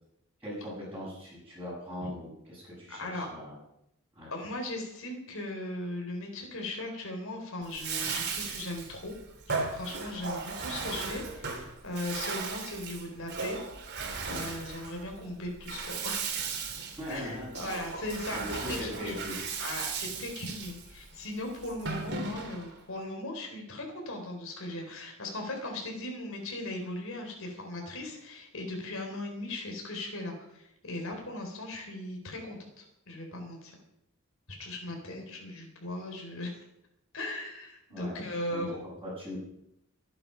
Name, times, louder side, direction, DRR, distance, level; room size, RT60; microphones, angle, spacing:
voice 1, 0.4-3.6 4.2-4.3 17.0-17.6 18.3-19.5 37.9-38.2 38.5-38.7 39.0-39.4, left 1 dB, 10° right, -9 dB, 7.1 m, -39 dB
voice 2, 2.9-3.3 4.3-9.1 9.5-13.6 14.3-16.3 17.1-19.2 19.6-33.7 34.6-36.5 37.1-38.8, left 1 dB, 65° left, 2 dB, 3.9 m, -38 dB
Bathtub (filling or washing), 7.6-22.8, right 5 dB, 50° right, 3.0 m, -37 dB
22.5 x 9.0 x 5.7 m, 0.81 s
head